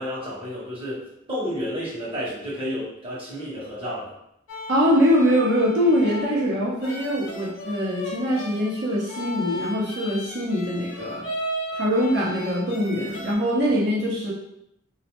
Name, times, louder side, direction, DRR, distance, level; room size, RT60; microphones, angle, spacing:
voice 1, 0.0-4.1, equal, 30° right, -8 dB, 1.1 m, -31 dB
sound 1, 4.5-13.3, equal, 70° left, 0.5 m, -36 dB
voice 2, 4.7-11.3 11.7-14.3, equal, 60° right, -5 dB, 0.8 m, -23 dB
2.4 x 2.1 x 2.9 m, 0.78 s
head